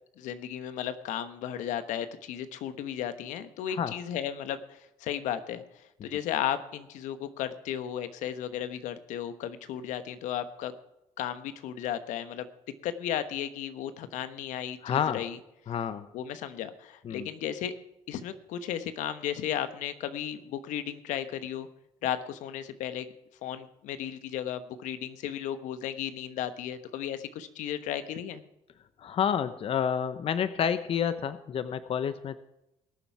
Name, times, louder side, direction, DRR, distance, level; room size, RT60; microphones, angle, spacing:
voice 1, 0.2-10.7 11.2-12.5 12.8-15.4 16.1-17.7 18.1-21.7 22.0-23.1 23.4-28.4, left 10 dB, 80° left, 11 dB, 1.2 m, -34 dB
voice 2, 14.8-15.2 15.7-16.1 17.0-17.3 29.0-32.4, left 8 dB, 50° left, 12 dB, 0.9 m, -29 dB
21.0 x 7.1 x 4.7 m, 0.86 s
cardioid pair, 100°, 13 cm